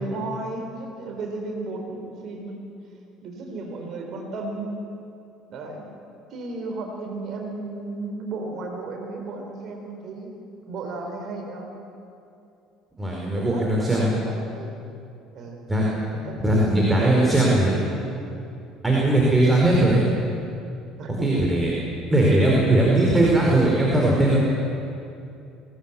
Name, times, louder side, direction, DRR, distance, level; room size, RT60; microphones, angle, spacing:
voice 1, 0.0-2.7 3.2-4.8 5.5-5.8 6.3-10.3 10.7-11.7 13.4-14.8 15.3-15.6 16.1-18.3 21.0-21.4, right 3 dB, 50° right, 2 dB, 4.2 m, -34 dB
voice 2, 13.0-14.1 15.7-15.8 16.4-17.7 18.8-20.0 21.2-21.7 22.1-24.4, right 1 dB, 10° right, -4 dB, 4.7 m, -19 dB
23.5 x 17.0 x 7.2 m, 2.6 s
figure-of-eight pair, 60°, 0 cm